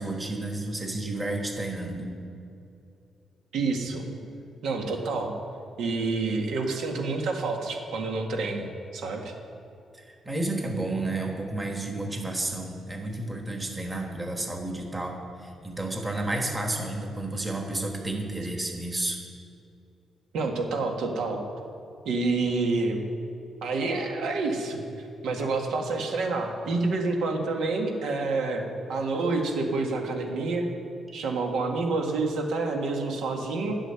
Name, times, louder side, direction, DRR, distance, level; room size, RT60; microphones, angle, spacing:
voice 1, 0.0-2.2 9.9-19.2, right 2 dB, 15° right, 2 dB, 1.3 m, -31 dB
voice 2, 3.5-4.0 4.6-5.3 5.8-8.7 8.9-9.3 20.3-21.4 22.1-23.0 23.6-24.8 25.2-30.7 31.1-33.7, right 3 dB, 85° right, 2 dB, 1.8 m, -28 dB
12.5 x 6.5 x 9.8 m, 2.6 s
cardioid pair, 165°, 0 cm